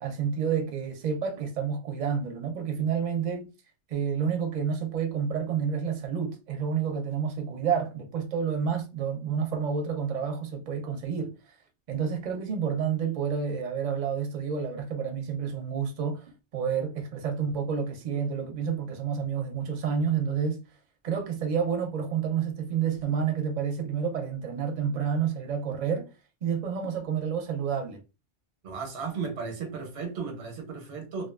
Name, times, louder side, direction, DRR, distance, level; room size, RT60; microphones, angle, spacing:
voice 1, 0.0-3.5 3.9-11.3 11.9-16.2 16.5-20.6 21.0-26.1 26.4-28.0, right 7 dB, 50° right, 0.7 m, -29 dB
voice 2, 28.6-31.3, right 5 dB, 85° right, 1.1 m, -35 dB
2.4 x 2.3 x 2.3 m
omnidirectional pair, 1.1 m